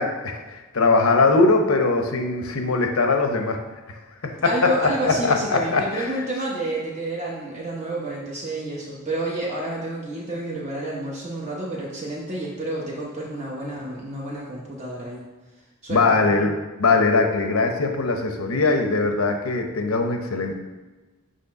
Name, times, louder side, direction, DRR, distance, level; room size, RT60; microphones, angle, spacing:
voice 1, 0.0-3.6 4.2-4.7 5.0-6.1 15.9-16.5 16.8-20.6, left 3 dB, 85° left, 4 dB, 0.7 m, -21 dB
voice 2, 4.4-15.2 15.8-16.2, right 2 dB, 35° right, -5 dB, 0.9 m, -29 dB
6.6 x 3.1 x 5.7 m, 1.2 s
head